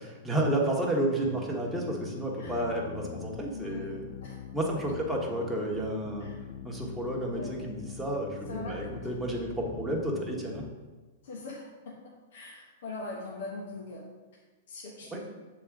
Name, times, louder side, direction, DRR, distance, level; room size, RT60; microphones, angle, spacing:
voice 1, 0.2-4.1 4.5-6.3 6.6-10.6 15.1-15.2, right 1 dB, 5° right, -3 dB, 1.3 m, -31 dB
sound 1, 1.2-10.7, left 9 dB, 50° left, 0.4 m, -44 dB
voice 2, 3.5-4.0 4.2-4.4 6.2-6.4 7.3-7.5 8.5-8.8 11.2-11.7 12.3-14.0 14.7-15.2, left 3 dB, 70° left, -2 dB, 1.2 m, -41 dB
6.7 x 3.8 x 4.7 m, 1.3 s
hypercardioid pair, 120°, 0 cm